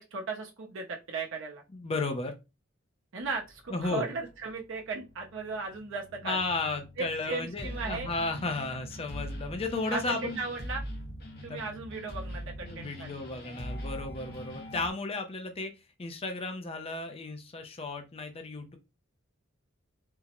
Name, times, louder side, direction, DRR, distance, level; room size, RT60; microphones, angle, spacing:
voice 1, 0.0-1.6 3.1-6.4 7.0-8.1 9.9-10.8 11.4-13.1, right 4 dB, 65° right, 1 dB, 0.7 m, -36 dB
voice 2, 1.7-2.3 3.7-4.1 6.2-10.4 11.5-11.6 12.6-15.7 16.0-18.8, left 3 dB, 30° left, 6 dB, 0.5 m, -34 dB
sound 1, 3.2-14.9, equal, 50° left, 1.2 m, -43 dB
3.7 x 2.0 x 2.9 m, 0.26 s
head